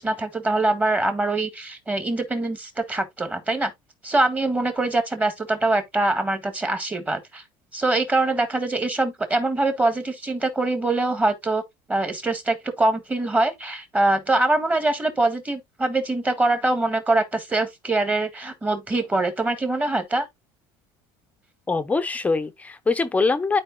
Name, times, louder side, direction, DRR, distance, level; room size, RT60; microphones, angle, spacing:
voice 1, 0.0-3.7 4.0-7.4 7.7-11.6 11.9-20.3, right 2 dB, 15° right, 1.6 m, -23 dB
voice 2, 21.7-23.6, left 4 dB, 15° left, 0.7 m, -23 dB
12.0 x 4.7 x 2.2 m
cardioid pair, 140°, 11 cm